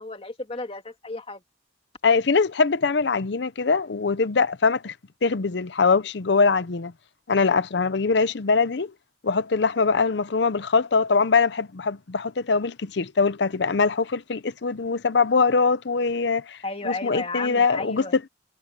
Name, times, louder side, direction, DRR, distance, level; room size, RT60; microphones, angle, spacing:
voice 1, 0.0-1.4 16.6-18.2, left 3 dB, 30° left, 2.5 m, -33 dB
voice 2, 2.0-4.9 5.2-6.9 7.3-8.9 9.2-16.6 16.8-18.3, left 4 dB, 65° left, 0.6 m, -22 dB
head